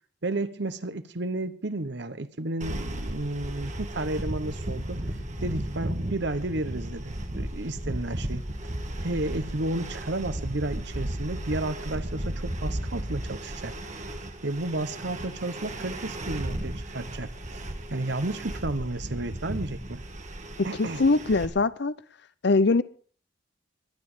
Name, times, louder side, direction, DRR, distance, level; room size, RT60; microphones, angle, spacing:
voice 1, 0.2-5.0 5.4-8.4 9.0-13.8 14.4-17.6 17.9-20.0 20.6-21.0, right 2 dB, 65° right, 1.1 m, -32 dB
sound 1, 2.6-21.5, right 1 dB, 40° right, 2.0 m, -35 dB
voice 2, 20.6-21.9 22.4-22.8, left 3 dB, 60° left, 0.7 m, -22 dB
22.0 x 9.5 x 5.1 m
head